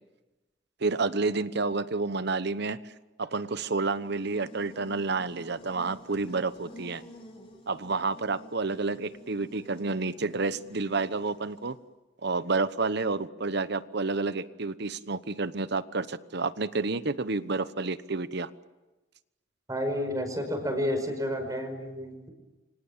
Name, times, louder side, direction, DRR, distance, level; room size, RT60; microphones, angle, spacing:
voice 1, 0.8-2.9 3.2-7.0 7.7-11.8 12.2-18.5, right 3 dB, 60° right, 14 dB, 1.1 m, -30 dB
Buzz, 3.7-11.8, left 1 dB, 30° left, 5.1 m, -51 dB
voice 2, 19.7-22.3, equal, 20° right, 6 dB, 5.3 m, -30 dB
29.0 x 25.0 x 7.4 m, 1.1 s
head